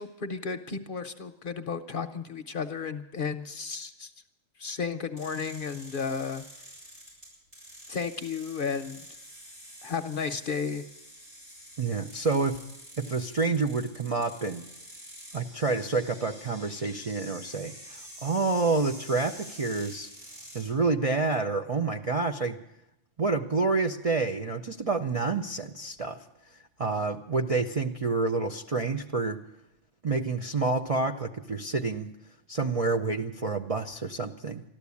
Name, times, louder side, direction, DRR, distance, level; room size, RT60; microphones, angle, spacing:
voice 1, 0.0-4.1 4.6-6.4 7.9-9.0 9.8-10.9, left 5 dB, 50° left, 8 dB, 0.7 m, -33 dB
sound 1, 5.2-20.7, equal, 85° right, 8.7 m, -48 dB
voice 2, 11.8-12.6 13.0-14.7 15.3-20.1 20.5-22.6 23.2-26.2 26.8-29.4 30.0-32.1 32.5-34.6, right 3 dB, 40° right, 3 dB, 0.5 m, -28 dB
13.5 x 12.5 x 8.4 m, 0.87 s
omnidirectional pair, 1.3 m